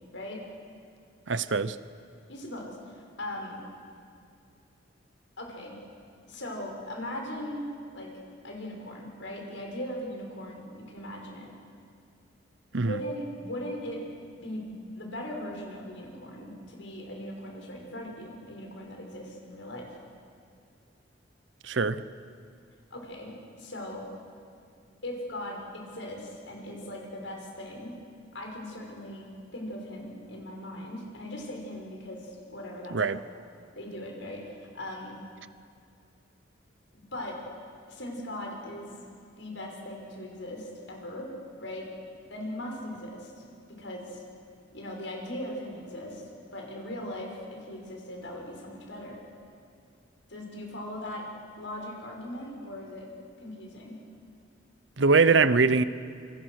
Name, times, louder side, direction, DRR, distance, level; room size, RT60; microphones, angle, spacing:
voice 1, 0.1-0.5 2.3-3.6 5.4-5.8 6.3-7.7 7.9-8.1 8.4-11.5 12.7-14.0 14.4-14.7 14.9-20.0 22.9-24.1 25.0-27.9 28.3-33.2 33.7-35.1 36.9-37.4 37.9-38.9 39.4-41.3 41.6-41.9 42.3-43.4 43.8-44.2 44.7-46.2 46.5-49.2 50.3-51.3 51.6-53.1 53.4-54.0, left 1 dB, 85° left, 6.2 m, -39 dB
voice 2, 1.3-1.8 12.7-13.0 21.6-22.0 32.9-33.2 55.0-55.8, right 4 dB, 80° right, 0.9 m, -22 dB
28.0 x 26.5 x 6.5 m
head